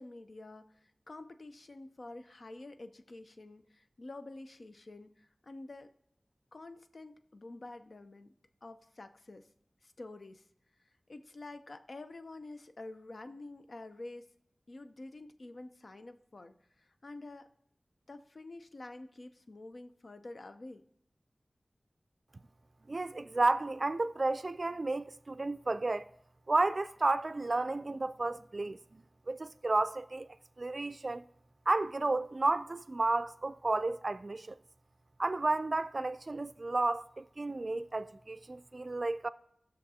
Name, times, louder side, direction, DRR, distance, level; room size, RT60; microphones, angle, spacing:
voice 1, 0.0-5.9 6.5-8.3 8.6-9.5 9.8-10.5 10.8-14.3 14.7-17.5 18.1-20.8, left 2 dB, 70° left, 0.6 m, -48 dB
voice 2, 22.9-26.1 26.5-30.3 30.6-31.2 31.7-34.6 35.2-39.3, right 2 dB, 50° right, 0.3 m, -32 dB
18.0 x 6.5 x 2.8 m
wide cardioid pair, 70°, 0 cm